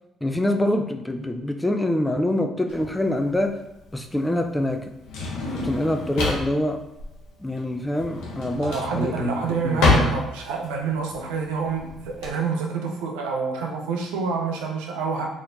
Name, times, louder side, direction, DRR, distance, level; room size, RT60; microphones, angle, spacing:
voice 1, 0.2-3.6 3.9-4.9 5.5-6.8 7.4-10.2, left 1 dB, 10° left, 5 dB, 0.4 m, -25 dB
Drawer open or close, 2.7-12.3, left 3 dB, 80° left, 0.8 m, -28 dB
voice 2, 8.6-15.3, right 5 dB, 90° right, 1 dB, 0.5 m, -27 dB
4.0 x 2.9 x 2.6 m, 0.85 s
supercardioid pair, 70°, 0 cm